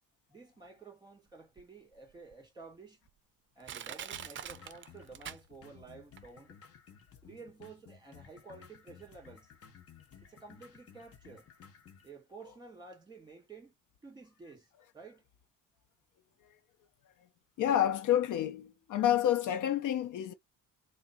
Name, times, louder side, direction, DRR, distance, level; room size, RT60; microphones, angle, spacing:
voice 1, 0.3-3.0 3.6-6.6 7.2-9.5 10.2-11.5 12.0-13.7 14.0-15.2, right 4 dB, 10° right, 2.2 m, -52 dB
Crushing, 1.6-1.7 2.3-2.4 3.1-3.2 3.6-5.8 6.2-6.3, right 9 dB, 35° right, 0.5 m, -43 dB
sound 1, 4.1-12.1, left 7 dB, 45° left, 1.0 m, -56 dB
voice 2, 17.6-20.3, left 11 dB, 60° left, 0.7 m, -29 dB
3.5 x 2.1 x 4.3 m
cardioid pair, 125°, 34 cm